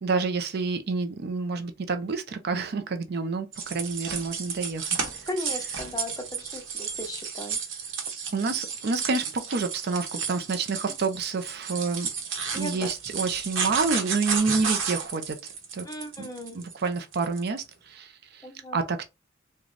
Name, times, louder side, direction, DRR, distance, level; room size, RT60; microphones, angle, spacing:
voice 1, 0.0-5.0 8.3-12.1 12.5-15.4 15.7-15.9 16.2-16.3 16.5-18.5 18.7-19.0, right 4 dB, 55° right, 0.5 m, -28 dB
sound 1, 3.5-17.6, right 6 dB, 70° right, 1.0 m, -32 dB
voice 2, 5.3-7.6 12.5-12.9 14.4-14.6 15.8-16.7 18.4-18.8, left 1 dB, 20° left, 0.8 m, -37 dB
3.8 x 2.2 x 3.2 m
head